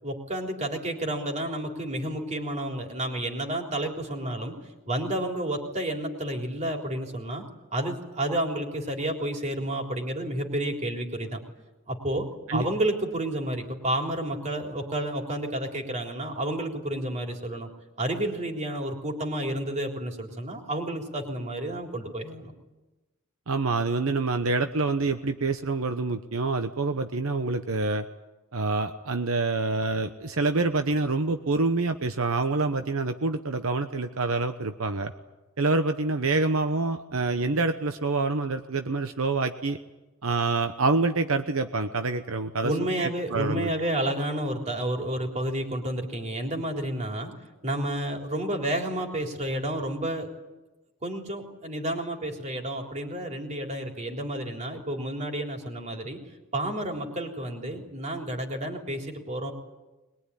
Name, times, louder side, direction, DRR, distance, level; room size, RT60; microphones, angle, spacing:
voice 1, 0.0-4.5 4.9-7.4 7.7-11.4 11.9-17.7 18.0-22.5 42.6-47.3 47.6-50.3 51.0-56.2 56.5-59.5, right 1 dB, 35° right, 2 dB, 3.7 m, -30 dB
voice 2, 23.5-28.1 28.5-35.1 35.6-39.8 40.2-42.7 43.0-43.7, right 3 dB, 75° right, 8 dB, 1.0 m, -26 dB
22.0 x 21.5 x 9.9 m, 1.1 s
head